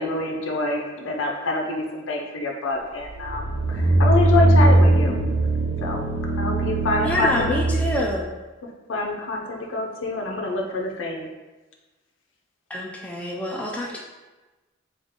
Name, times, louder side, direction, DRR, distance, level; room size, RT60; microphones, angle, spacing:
voice 1, 0.0-3.4 3.7-5.2 5.8-6.1 6.4-7.5 8.9-11.3, left 2 dB, 70° left, 1 dB, 0.6 m, -26 dB
sound 1, 3.0-8.1, right 2 dB, 80° right, 0.5 m, -20 dB
voice 2, 7.0-8.3 12.7-14.0, left 1 dB, 5° left, -2 dB, 0.3 m, -26 dB
3.6 x 2.4 x 3.6 m, 1.2 s
head